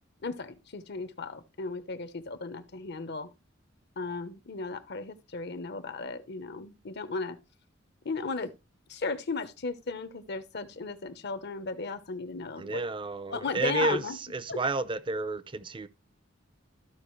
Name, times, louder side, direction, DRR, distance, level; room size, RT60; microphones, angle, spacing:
voice 1, 0.2-3.3 4.0-7.4 8.0-8.5 8.9-12.8 13.3-14.2 14.5-14.6, left 4 dB, 55° left, 1.0 m, -35 dB
voice 2, 12.6-15.9, right 3 dB, 25° right, 0.6 m, -31 dB
14.0 x 5.0 x 3.2 m
head